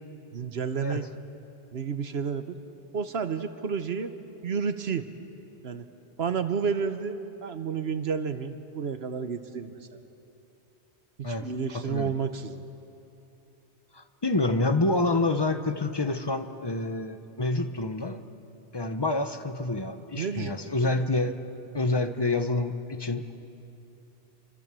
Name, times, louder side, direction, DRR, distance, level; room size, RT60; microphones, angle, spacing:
voice 1, 0.3-1.0 1.7-2.6 2.9-4.1 4.4-5.1 5.6-5.9 6.2-9.8 11.2-12.6 20.2-20.5, right 6 dB, 65° right, 9 dB, 1.2 m, -31 dB
voice 2, 11.7-12.1 13.9-18.2 18.7-21.3 21.7-23.3, left 2 dB, 25° left, 8 dB, 1.0 m, -27 dB
28.5 x 25.0 x 7.6 m, 2.9 s
omnidirectional pair, 1.1 m